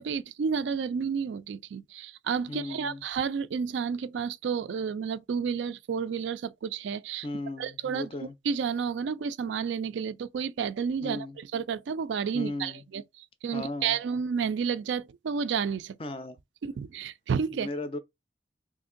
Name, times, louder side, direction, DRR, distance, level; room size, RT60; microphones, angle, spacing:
voice 1, 0.0-7.3 7.6-16.0 16.6-17.7, right 6 dB, 70° right, 0.3 m, -31 dB
voice 2, 2.5-3.0 7.2-8.3 11.0-11.4 12.3-12.8 13.5-14.0 16.0-16.4 17.5-18.0, left 2 dB, 30° left, 0.4 m, -36 dB
2.9 x 2.6 x 3.7 m
head